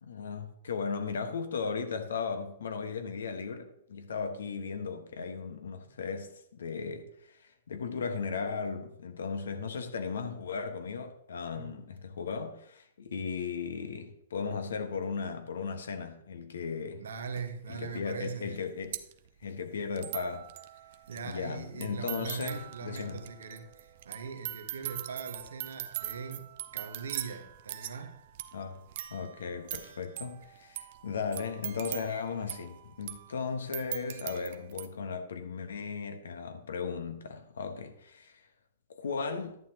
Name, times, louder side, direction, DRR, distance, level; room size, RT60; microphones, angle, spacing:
voice 1, 0.0-17.0 17.7-19.0 19.4-20.5 21.2-23.2 28.5-28.8 29.1-38.5 38.9-39.6, left 5 dB, 75° left, 1.3 m, -36 dB
voice 2, 17.0-18.6 21.1-28.2, right 5 dB, 75° right, 1.2 m, -41 dB
sound 1, 17.4-17.5 18.2-18.3 18.5-34.9, right 13 dB, 55° right, 0.7 m, -42 dB
11.0 x 8.7 x 2.9 m
hypercardioid pair, 110°, 0 cm